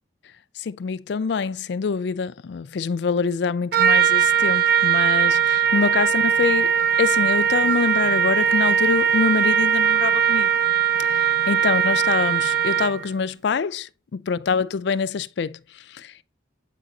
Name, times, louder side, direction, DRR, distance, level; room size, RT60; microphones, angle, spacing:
voice 1, 0.6-10.5 11.0-16.2, left 5 dB, 65° left, 0.4 m, -25 dB
Trumpet, 3.7-13.1, right 8 dB, 55° right, 0.4 m, -20 dB
8.2 x 5.9 x 2.5 m
head